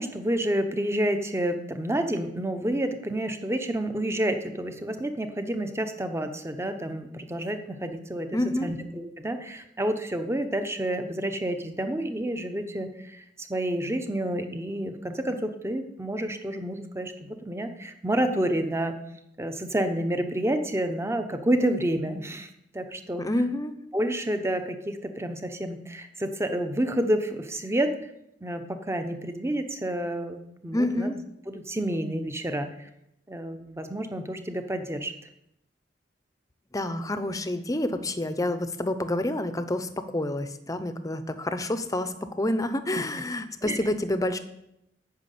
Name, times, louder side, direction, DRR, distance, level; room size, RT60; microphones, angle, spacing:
voice 1, 0.0-18.9 19.4-22.5 22.7-23.2 23.9-27.9 28.4-31.1 31.5-32.9 33.3-35.1 43.6-43.8, right 1 dB, 15° right, 7 dB, 0.9 m, -29 dB
voice 2, 8.3-8.8 23.2-23.8 30.7-31.2 36.7-44.4, left 1 dB, 20° left, 10 dB, 0.8 m, -28 dB
9.5 x 6.3 x 8.4 m, 0.81 s
head